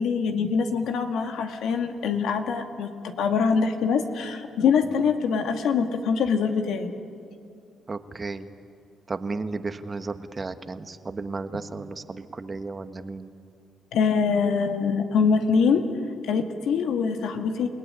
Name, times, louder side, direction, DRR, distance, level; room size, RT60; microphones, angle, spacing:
voice 1, 0.0-6.9 13.9-15.9 16.2-17.7, left 5 dB, 80° left, 6 dB, 2.1 m, -24 dB
voice 2, 7.9-8.5 9.1-13.3, right 3 dB, 30° right, 10 dB, 1.3 m, -34 dB
28.5 x 18.0 x 10.0 m, 2.5 s
cardioid pair, 90°, 0 cm